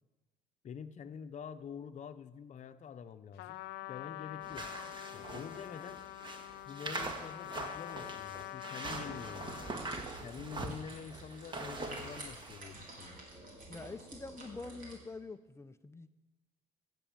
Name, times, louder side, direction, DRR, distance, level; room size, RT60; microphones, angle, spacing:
voice 1, 0.6-4.7 5.1-6.0 6.7-9.6 10.2-13.2, left 7 dB, 45° left, 10 dB, 1.0 m, -47 dB
Trumpet, 3.4-10.0, left 18 dB, 85° left, 0.4 m, -45 dB
sound 1, 4.4-12.7, right 2 dB, 30° right, 1.8 m, -43 dB
sound 2, 9.4-15.0, right 2 dB, 55° right, 4.6 m, -51 dB
voice 2, 13.7-16.1, left 3 dB, 15° left, 10 dB, 0.7 m, -46 dB
15.5 x 8.5 x 8.8 m, 1.2 s
cardioid pair, 110°, 17 cm